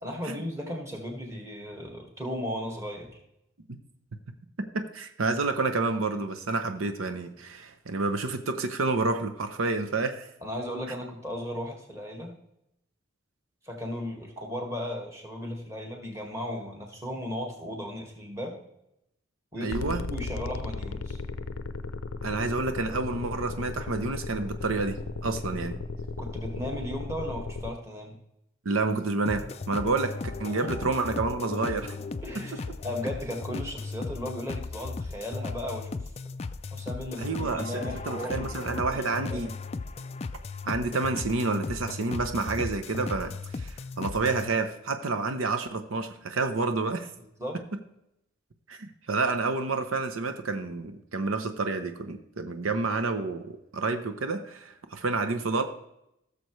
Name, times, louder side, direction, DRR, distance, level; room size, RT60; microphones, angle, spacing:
voice 1, 0.0-3.2 10.4-12.3 13.6-18.6 19.5-21.2 26.2-28.1 30.6-30.7 32.2-36.0 36.7-38.4 38.9-39.0 39.3-39.4 47.4-47.6, equal, 15° right, 1 dB, 1.7 m, -36 dB
voice 2, 4.7-10.3 19.6-20.0 22.2-25.7 28.6-30.1 30.4-32.0 37.2-39.5 40.7-47.1 48.7-55.6, right 3 dB, 85° right, 7 dB, 0.8 m, -29 dB
sound 1, 19.7-27.7, left 3 dB, 90° left, 0.5 m, -35 dB
sound 2, 29.3-44.5, left 3 dB, 30° left, 0.3 m, -36 dB
16.0 x 6.9 x 3.1 m, 0.82 s
head